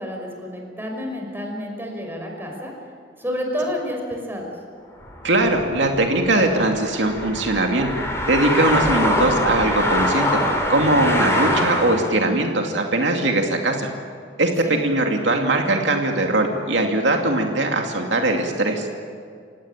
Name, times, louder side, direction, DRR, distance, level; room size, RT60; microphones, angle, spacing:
voice 1, 0.0-2.7 3.2-4.5 14.6-14.8, equal, 10° right, 1 dB, 5.5 m, -29 dB
sound 1, 5.0-12.2, left 1 dB, 15° left, 4.8 m, -24 dB
voice 2, 5.2-7.9 8.3-10.4 10.7-13.9 14.4-14.5 14.8-18.9, right 2 dB, 75° right, 2 dB, 2.6 m, -20 dB
29.0 x 17.0 x 9.0 m, 2.2 s
head